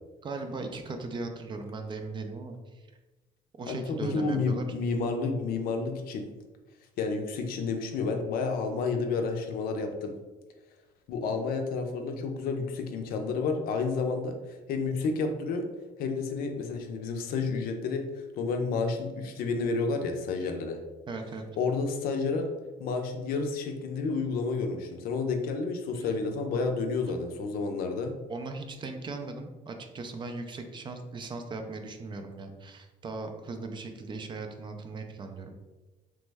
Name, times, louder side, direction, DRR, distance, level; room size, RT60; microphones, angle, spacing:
voice 1, 0.2-2.8 3.6-4.6 21.1-21.4 25.9-26.1 27.0-27.1 28.3-35.5, right 3 dB, 30° right, 5 dB, 0.3 m, -38 dB
voice 2, 3.7-6.3 7.0-10.1 11.1-15.7 16.0-18.1 18.3-20.8 21.6-22.5 22.8-28.1, left 4 dB, 70° left, 4 dB, 0.5 m, -30 dB
3.1 x 2.0 x 3.3 m, 1.2 s
cardioid pair, 120°, 16 cm